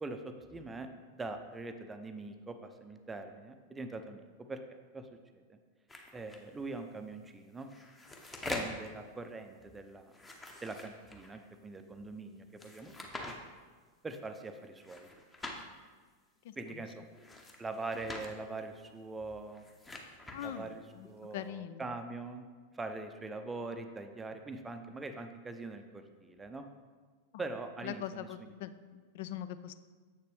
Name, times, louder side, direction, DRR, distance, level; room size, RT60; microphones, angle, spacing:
voice 1, 0.0-4.2 4.5-4.6 4.9-5.1 5.3-5.6 6.1-7.7 8.5-10.1 10.6-12.9 14.0-15.1 16.6-17.0 17.6-19.6 20.4-22.4 22.7-26.7 27.4-28.5, right 3 dB, 15° right, 7 dB, 0.5 m, -42 dB
sound 1, 5.9-6.4 7.5-8.9 10.1-11.4 12.6-13.4 14.8-15.6 17.1-18.3 19.4-20.5, left 2 dB, 15° left, 0.9 m, -44 dB
voice 2, 16.4-16.8 20.3-21.9 27.3-27.4 27.8-29.7, left 11 dB, 55° left, 13 dB, 0.3 m, -42 dB
7.5 x 6.6 x 3.4 m, 1.5 s
figure-of-eight pair, 90°, 0 cm